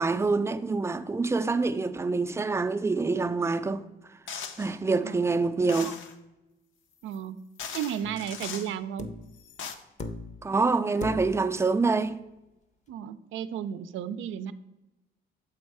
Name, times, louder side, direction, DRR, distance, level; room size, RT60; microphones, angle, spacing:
voice 1, 0.0-3.8 4.6-6.0 10.4-12.2, right 3 dB, 15° right, 0.4 m, -26 dB
sound 1, 4.3-4.7 5.7-6.1 7.1-7.2 7.6-8.7 9.3-9.7, left 6 dB, 75° left, 0.7 m, -39 dB
voice 2, 7.0-7.4 7.7-9.1 12.9-14.5, right 9 dB, 80° right, 0.4 m, -33 dB
sound 2, 8.0-8.3 9.0-9.4 10.0-10.5 11.0-11.5 12.9-13.0, left 3 dB, 35° left, 0.7 m, -38 dB
7.1 x 4.3 x 4.7 m
cardioid pair, 90°, 20 cm